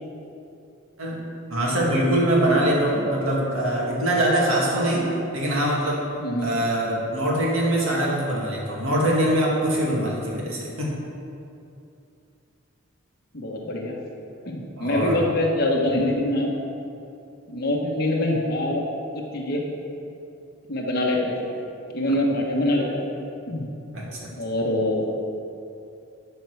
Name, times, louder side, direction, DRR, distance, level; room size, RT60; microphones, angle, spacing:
voice 1, 1.5-6.0 6.4-10.9 14.8-15.2 23.9-24.3, right 1 dB, 80° right, -4 dB, 2.3 m, -23 dB
voice 2, 6.2-6.6 13.3-14.0 14.4-16.5 17.5-18.8 19.1-19.6 20.7-21.4 21.9-23.1 23.5-23.7 24.4-25.1, left 1 dB, 45° left, -2 dB, 1.3 m, -24 dB
11.5 x 4.6 x 6.4 m, 2.6 s
head